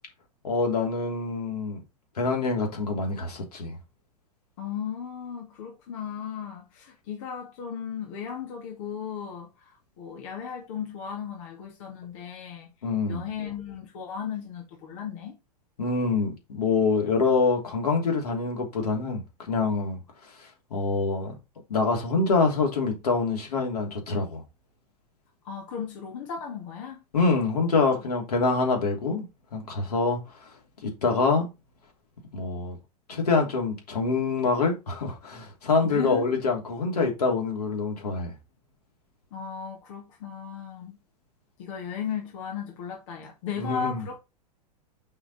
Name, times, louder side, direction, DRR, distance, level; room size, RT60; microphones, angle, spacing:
voice 1, 0.4-1.8 2.2-3.8 12.8-13.3 15.8-19.2 19.5-21.4 21.7-24.4 27.1-29.2 29.5-30.5 30.8-31.5 32.3-32.8 33.1-38.3 43.6-44.0, left 4 dB, 70° left, 3.0 m, -26 dB
voice 2, 4.6-12.7 13.1-15.4 25.4-27.0 35.8-36.3 39.3-41.0 41.6-44.2, left 7 dB, 55° left, 2.1 m, -36 dB
5.9 x 5.6 x 4.2 m
figure-of-eight pair, 95°, 20 cm